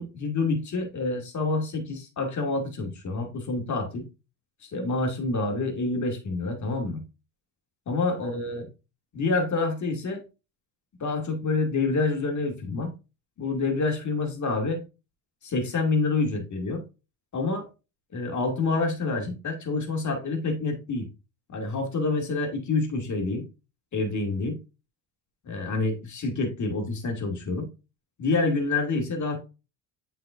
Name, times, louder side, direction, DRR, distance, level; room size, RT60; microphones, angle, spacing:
voice 1, 0.0-4.0 4.6-7.0 7.9-8.6 9.1-10.2 11.0-12.9 13.4-14.8 15.4-16.8 17.3-17.7 18.1-21.1 21.5-23.5 23.9-24.6 25.5-27.7 28.2-29.4, left 3 dB, 45° left, 2.3 m, -27 dB
7.6 x 5.5 x 2.5 m
supercardioid pair, 80°, 41 cm